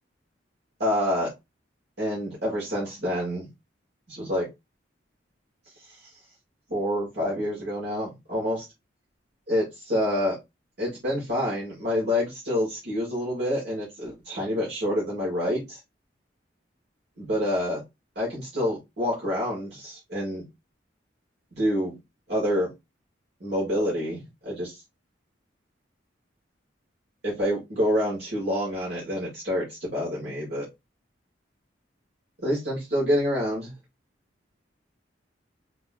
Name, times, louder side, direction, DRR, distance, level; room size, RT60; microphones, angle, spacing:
voice 1, 0.8-1.3 2.0-3.5 4.1-4.5 6.7-8.7 9.5-10.4 10.8-15.8 17.2-17.8 18.2-20.4 21.5-22.0 22.3-22.7 23.4-24.7 27.2-30.7 32.4-33.7, equal, 60° right, -5 dB, 1.8 m, -27 dB
3.9 x 3.3 x 2.3 m, 0.22 s
head